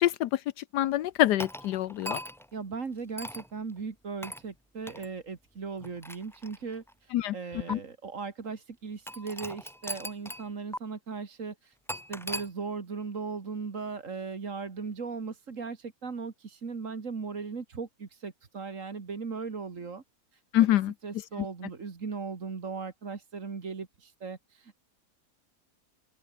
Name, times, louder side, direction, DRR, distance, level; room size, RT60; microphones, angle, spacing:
voice 1, 0.0-2.2 7.1-7.3 7.7-7.8 20.5-20.9, left 13 dB, 80° left, 1.3 m, -26 dB
sound 1, 1.4-2.5 3.2-3.5 4.2-4.5 4.9-5.1 5.8-6.9 7.7-7.8 9.1-10.5 10.7-10.8 11.9-12.5, equal, ahead, 3.0 m, -39 dB
voice 2, 2.5-20.0 20.3-20.8 21.0-24.8, right 5 dB, 50° right, 2.3 m, -38 dB
open air
omnidirectional pair, 1.8 m